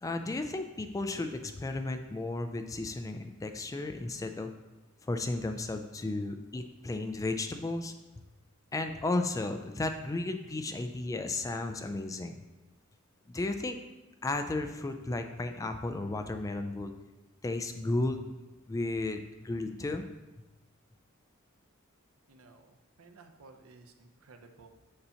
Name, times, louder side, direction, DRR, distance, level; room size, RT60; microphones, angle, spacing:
voice 1, 0.0-4.5 5.1-7.9 8.7-12.3 13.3-13.8 14.2-16.9 17.4-18.3 18.7-20.0, left 2 dB, 15° left, 7 dB, 0.3 m, -34 dB
voice 2, 22.3-22.6 23.0-24.7, right 3 dB, 80° right, 6 dB, 0.6 m, -55 dB
6.6 x 2.8 x 5.5 m, 1.1 s
head